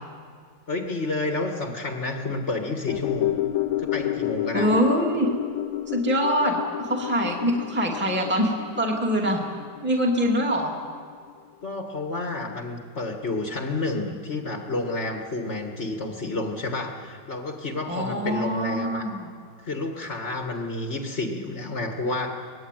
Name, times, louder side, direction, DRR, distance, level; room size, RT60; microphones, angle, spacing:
voice 1, 0.7-3.4 3.8-4.7 11.6-19.1 19.6-22.4, left 2 dB, 35° left, 3 dB, 1.9 m, -30 dB
sound 1, 2.9-11.3 11.6-11.7, left 14 dB, 85° left, 1.7 m, -30 dB
voice 2, 4.5-5.3 5.9-10.7 17.9-19.3, equal, 5° right, 0 dB, 2.3 m, -24 dB
24.5 x 19.5 x 9.2 m, 2.1 s
omnidirectional pair, 2.2 m